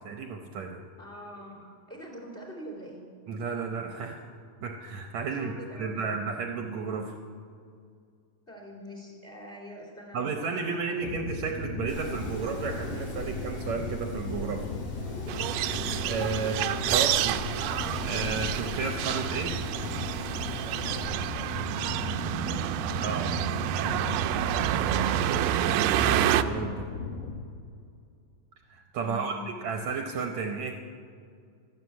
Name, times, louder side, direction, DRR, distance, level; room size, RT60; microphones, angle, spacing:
voice 1, 0.0-0.8 3.3-4.2 4.6-7.1 10.1-14.7 16.0-17.4 18.0-19.5 23.0-23.3 26.0-26.8 28.7-30.7, right 5 dB, 70° right, 4 dB, 1.9 m, -32 dB
voice 2, 1.0-3.0 5.3-6.1 8.5-11.1 16.3-17.3 22.2-22.8 29.0-29.5, equal, 15° left, -1 dB, 2.7 m, -44 dB
sound 1, 11.0-27.4, left 3 dB, 85° left, 2.5 m, -37 dB
Wind, 11.9-21.1, equal, 55° left, 4.3 m, -41 dB
sound 2, 15.3-26.4, right 12 dB, 90° right, 2.2 m, -28 dB
13.0 x 12.5 x 8.3 m, 2.3 s
omnidirectional pair, 3.8 m